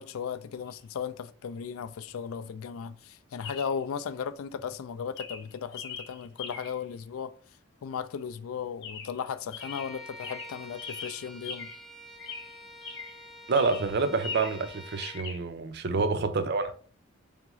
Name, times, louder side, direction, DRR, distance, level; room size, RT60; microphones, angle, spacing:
voice 1, 0.0-7.3 7.8-11.7 15.9-16.1, left 7 dB, 80° left, 0.4 m, -36 dB
Chirp tweet, 0.7-0.8 3.4-3.8 4.6-4.8 5.2-6.9 8.8-9.3 9.5-11.9 12.2-13.2 13.5-14.7 15.0-15.4, left 5 dB, 55° left, 0.8 m, -41 dB
Bowed string instrument, 9.6-15.3, equal, ahead, 0.4 m, -47 dB
voice 2, 13.5-16.7, right 4 dB, 50° right, 0.5 m, -27 dB
3.7 x 3.5 x 3.0 m
head